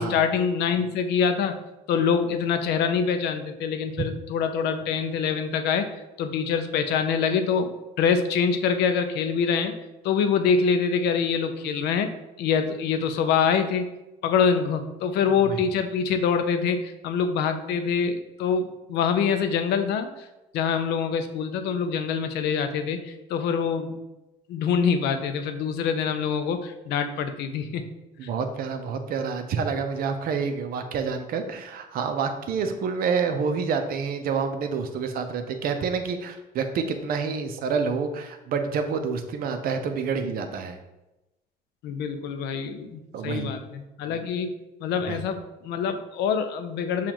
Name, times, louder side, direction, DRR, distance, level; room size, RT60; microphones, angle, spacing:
voice 1, 0.0-1.6 1.9-5.9 6.2-9.7 10.0-12.1 12.4-13.9 14.2-20.1 20.5-24.0 24.5-27.8 28.2-28.3 41.8-47.1, left 6 dB, 80° left, 8 dB, 0.5 m, -25 dB
voice 2, 15.2-15.6 28.2-40.8 43.1-43.5 45.1-45.2, right 5 dB, 60° right, 7 dB, 0.6 m, -28 dB
7.0 x 2.4 x 3.0 m, 0.98 s
cardioid pair, 110°, 17 cm